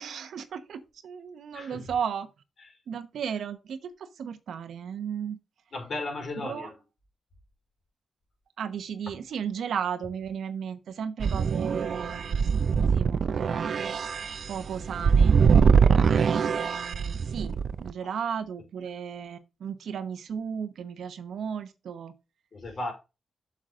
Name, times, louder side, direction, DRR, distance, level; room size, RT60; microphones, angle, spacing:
voice 1, 0.0-2.3 2.9-5.4 6.4-6.7 8.6-14.0 14.5-15.4 15.7-15.8 16.1-22.1, right 7 dB, 85° right, 0.9 m, -35 dB
voice 2, 1.5-1.9 2.6-2.8 5.7-6.7 18.0-18.2 22.5-22.9, left 2 dB, 60° left, 4.4 m, -36 dB
sound 1, 11.2-17.9, right 6 dB, 65° right, 0.5 m, -23 dB
7.7 x 6.5 x 3.7 m
cardioid pair, 70°, 0 cm